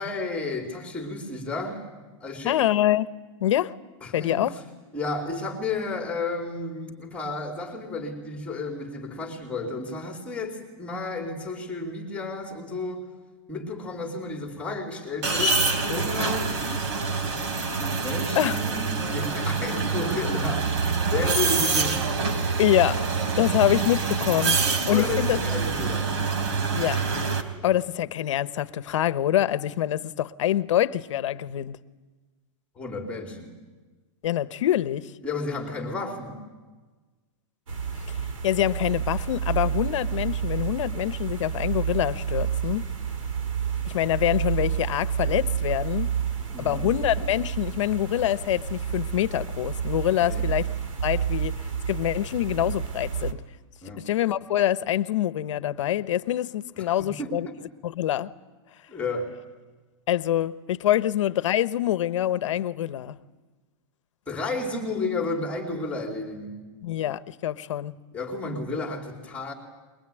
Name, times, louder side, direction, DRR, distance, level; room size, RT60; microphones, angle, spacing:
voice 1, 0.0-1.8 2.2-2.6 4.0-4.5 4.9-13.1 13.5-16.6 18.0-22.1 24.9-26.2 32.8-33.6 35.2-36.4 46.5-46.9 50.2-50.5 53.8-54.1 57.0-57.6 58.9-59.3 64.3-66.6 68.1-69.5, left 3 dB, 10° left, 3.1 m, -32 dB
voice 2, 2.4-3.1 3.4-3.8 4.1-4.6 18.3-18.6 22.6-23.1 23.4-24.6 24.9-25.4 26.7-27.0 27.6-31.8 34.2-35.1 38.1-38.2 38.4-42.8 43.8-46.1 46.6-50.7 51.0-53.4 54.0-57.5 57.8-58.3 60.1-63.2 66.8-67.9, left 12 dB, 70° left, 1.0 m, -25 dB
sound 1, 15.2-27.4, right 4 dB, 60° right, 3.4 m, -26 dB
sound 2, 37.7-53.3, right 8 dB, 85° right, 3.4 m, -30 dB
22.5 x 22.0 x 9.1 m
supercardioid pair, 160°, 16 cm